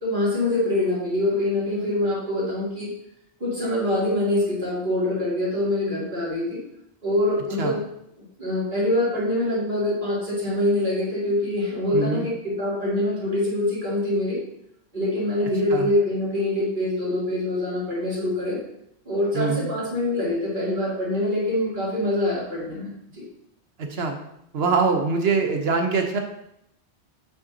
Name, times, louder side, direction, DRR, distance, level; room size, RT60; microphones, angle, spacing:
voice 1, 0.0-2.9 3.4-6.6 7.0-7.8 8.4-14.4 14.9-18.6 19.0-23.2, left 1 dB, 45° right, -9 dB, 3.0 m, -24 dB
voice 2, 11.9-12.2 15.7-15.9 19.3-19.7 23.8-24.2 24.5-26.2, right 4 dB, 70° right, 4 dB, 1.1 m, -23 dB
8.2 x 5.6 x 2.7 m, 0.77 s
omnidirectional pair, 1.1 m